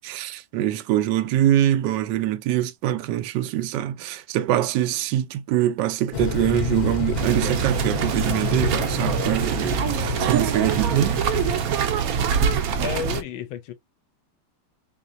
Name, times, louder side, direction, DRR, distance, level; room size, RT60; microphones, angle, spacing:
voice 1, 0.0-11.2, right 12 dB, 70° right, 1.1 m, -24 dB
Thunder / Rain, 6.1-11.7, left 5 dB, 35° left, 0.7 m, -29 dB
sound 1, 7.2-13.2, right 8 dB, 85° right, 0.7 m, -24 dB
voice 2, 12.8-13.7, left 9 dB, 75° left, 1.4 m, -31 dB
5.2 x 2.9 x 2.6 m
omnidirectional pair, 2.3 m